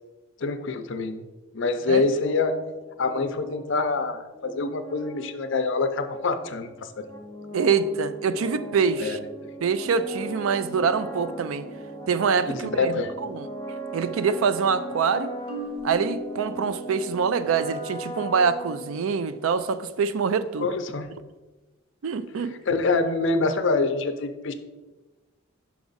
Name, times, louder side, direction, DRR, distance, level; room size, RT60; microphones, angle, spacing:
voice 1, 0.4-1.2 1.5-2.6 3.0-6.7 9.0-9.2 12.5-13.1 20.6-21.1 22.4-24.5, left 3 dB, 60° left, 9 dB, 0.5 m, -25 dB
sound 1, 1.8-19.4, right 1 dB, 15° left, 0.7 m, -39 dB
voice 2, 7.5-9.2 9.6-11.6 12.1-12.9 13.3-13.5 13.9-15.3 15.8-20.7 22.0-22.5, right 5 dB, 75° right, 13 dB, 0.4 m, -25 dB
Marimba xylophone, 15.5-17.5, left 2 dB, 30° right, 1.2 m, -38 dB
5.9 x 4.7 x 4.0 m, 1.2 s
head